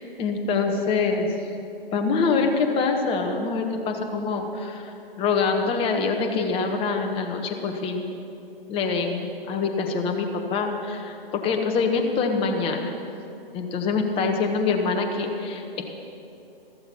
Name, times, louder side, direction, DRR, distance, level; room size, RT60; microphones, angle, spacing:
voice 1, 0.2-1.4 1.9-8.2 8.7-12.9 13.5-15.8, left 4 dB, 20° left, 3 dB, 1.2 m, -25 dB
14.5 x 14.0 x 5.7 m, 2.8 s
figure-of-eight pair, 130°, 29 cm